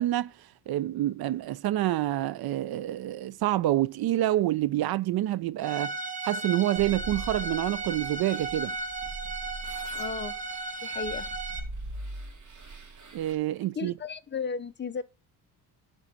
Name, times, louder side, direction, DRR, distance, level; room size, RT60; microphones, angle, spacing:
voice 1, 0.0-6.0 6.2-8.8 13.1-13.9, right 14 dB, 65° right, 0.5 m, -27 dB
Bowed string instrument, 5.6-11.6, right 2 dB, 20° right, 1.6 m, -35 dB
sound 1, 6.8-13.4, right 2 dB, 45° right, 2.3 m, -42 dB
voice 2, 10.0-10.3 10.8-11.3 13.8-15.0, left 5 dB, 25° left, 0.8 m, -34 dB
11.5 x 3.9 x 7.1 m
cardioid pair, 135°, 40 cm